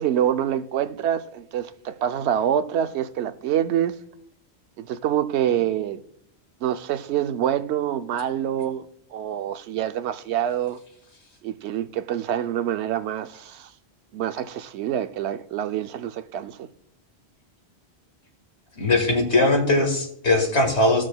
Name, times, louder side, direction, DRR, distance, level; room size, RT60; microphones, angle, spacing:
voice 1, 0.0-3.9 4.8-6.0 6.6-8.8 9.1-10.8 11.4-13.7 14.1-16.7, right 10 dB, 85° right, 0.9 m, -26 dB
voice 2, 18.8-21.1, left 2 dB, 85° left, 2.0 m, -20 dB
17.5 x 6.2 x 2.2 m
omnidirectional pair, 1.1 m